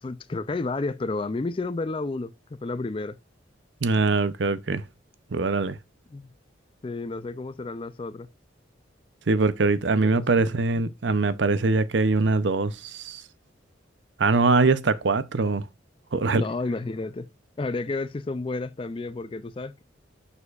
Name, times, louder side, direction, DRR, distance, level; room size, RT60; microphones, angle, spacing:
voice 1, 0.0-3.2 6.1-6.3 6.8-8.3 10.0-10.4 16.3-17.3 17.6-19.8, left 3 dB, 25° left, 0.4 m, -31 dB
voice 2, 3.8-4.8 5.3-5.8 9.3-13.2 14.2-15.6 16.1-16.4, right 3 dB, 65° right, 0.6 m, -22 dB
7.0 x 6.5 x 2.4 m
head